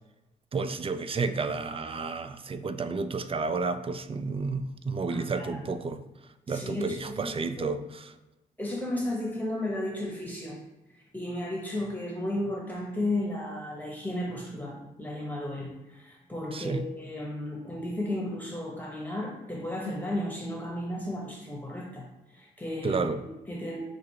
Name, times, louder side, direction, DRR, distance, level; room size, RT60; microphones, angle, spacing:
voice 1, 0.5-6.0 6.5-7.8 16.5-16.8 22.8-23.2, right 4 dB, 35° right, 10 dB, 0.4 m, -31 dB
voice 2, 5.1-5.7 6.5-7.8 8.6-10.6 11.1-23.8, left 1 dB, 10° left, -2 dB, 1.0 m, -34 dB
5.9 x 2.5 x 2.8 m, 1.0 s
supercardioid pair, 50°, 16 cm